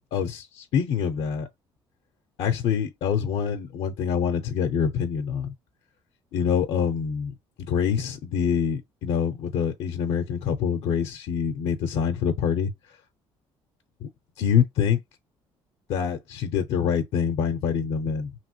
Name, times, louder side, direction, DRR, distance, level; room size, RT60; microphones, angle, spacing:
voice 1, 0.0-1.5 2.4-5.5 6.3-13.0 14.0-14.1 14.4-15.0 15.9-18.3, left 7 dB, 75° left, 0.6 m, -26 dB
2.9 x 2.7 x 2.8 m
cardioid pair, 105°, 10 cm